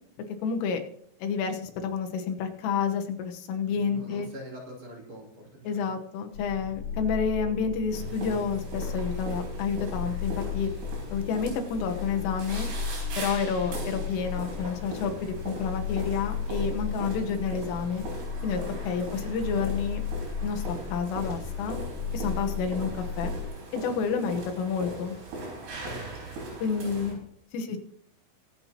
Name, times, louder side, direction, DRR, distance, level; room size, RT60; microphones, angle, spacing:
voice 1, 0.4-0.8 1.2-4.3 5.7-10.7 11.1-12.7 13.2-18.0 18.4-20.0 20.4-21.8 22.1-23.3 23.7-25.2 26.6-27.2 27.5-27.8, left 6 dB, 90° left, 5 dB, 3.8 m, -29 dB
voice 2, 3.7-5.9 26.8-27.1 27.7-27.8, right 1 dB, 40° right, -4 dB, 3.6 m, -44 dB
sound 1, 6.3-23.5, left 5 dB, 55° left, 3.2 m, -35 dB
sound 2, 7.9-27.1, right 2 dB, 85° right, 7.1 m, -40 dB
23.0 x 8.7 x 2.9 m, 0.65 s
omnidirectional pair, 5.6 m